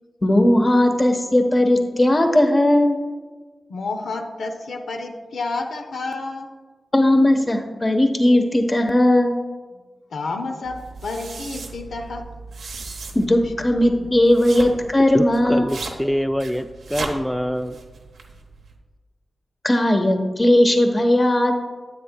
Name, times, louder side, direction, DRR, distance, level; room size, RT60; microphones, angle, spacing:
voice 1, 0.2-3.0 6.9-9.4 13.1-15.7 19.6-21.5, left 1 dB, 35° left, 5 dB, 1.0 m, -17 dB
voice 2, 3.7-6.5 10.1-12.3 13.4-13.5, left 3 dB, 85° left, 4 dB, 0.6 m, -30 dB
sound 1, 10.6-18.8, right 3 dB, 85° right, 0.8 m, -37 dB
voice 3, 15.1-17.8, equal, 5° left, 8 dB, 0.3 m, -25 dB
9.4 x 7.9 x 2.3 m, 1.4 s
cardioid pair, 40°, 0 cm